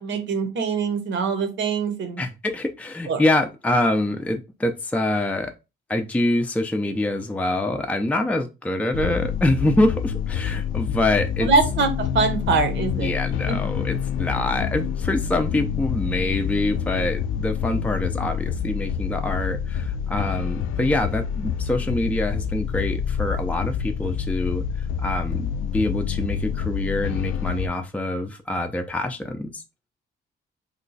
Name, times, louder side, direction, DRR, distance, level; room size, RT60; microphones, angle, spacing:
voice 1, 0.0-2.2 3.1-3.2 11.4-13.1 13.5-13.7, right 4 dB, 70° right, 7 dB, 0.9 m, -23 dB
voice 2, 2.2-5.5 5.9-11.5 13.0-24.6 25.0-29.6, left 1 dB, 5° left, 5 dB, 0.5 m, -25 dB
sound 1, 8.9-27.7, left 8 dB, 90° left, 0.4 m, -27 dB
3.0 x 2.3 x 3.9 m, 0.27 s
cardioid pair, 90°, 20 cm